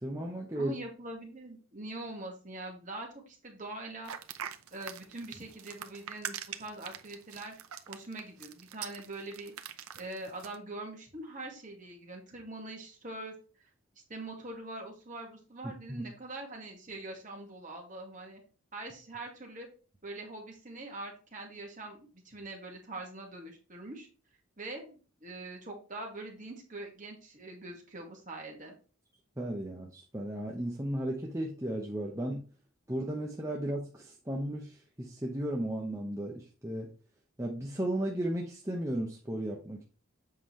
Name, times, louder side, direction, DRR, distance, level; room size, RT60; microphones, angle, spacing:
voice 1, 0.0-0.8 15.9-16.0 29.4-32.4 32.9-36.9 37.4-39.8, right 1 dB, 15° right, -1 dB, 0.9 m, -35 dB
voice 2, 0.5-4.1 4.7-7.5 7.9-9.5 9.9-13.3 14.1-18.4 18.7-19.7 20.0-24.1 24.6-28.7, right 2 dB, 35° right, 1 dB, 2.1 m, -43 dB
sound 1, 4.0-10.5, right 9 dB, 80° right, 0.8 m, -43 dB
7.7 x 5.4 x 3.2 m, 0.35 s
head